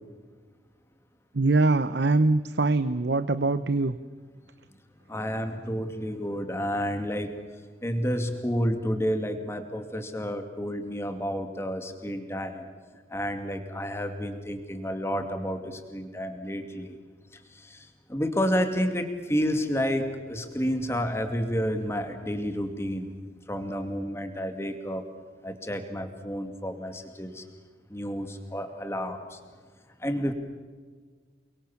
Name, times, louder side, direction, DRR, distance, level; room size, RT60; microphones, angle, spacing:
voice 1, 1.3-4.0, right 3 dB, 70° right, 12 dB, 0.8 m, -23 dB
voice 2, 5.1-7.4 7.8-12.7 13.1-17.0 17.3-23.1 23.5-25.0 25.4-27.4 27.9-29.4 30.0-30.3, equal, 15° left, 6 dB, 2.5 m, -30 dB
29.5 x 23.0 x 7.2 m, 1.5 s
head